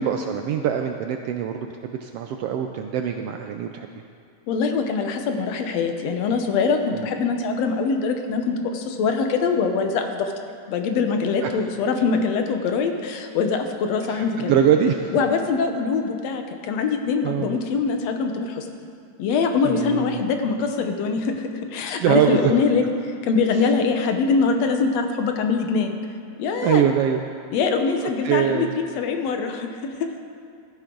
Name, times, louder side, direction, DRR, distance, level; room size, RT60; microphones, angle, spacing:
voice 1, 0.0-3.9 6.9-7.0 11.4-11.5 14.1-15.1 17.2-17.6 19.6-20.2 22.0-22.5 26.6-27.2 28.2-28.7, right 9 dB, 85° right, 5 dB, 1.3 m, -23 dB
voice 2, 4.5-10.3 10.7-14.5 15.1-18.7 19.2-21.4 21.7-25.9 26.4-26.8 27.5-30.2, left 5 dB, 70° left, 5 dB, 2.0 m, -23 dB
16.0 x 14.0 x 3.9 m, 2.3 s
omnidirectional pair, 3.4 m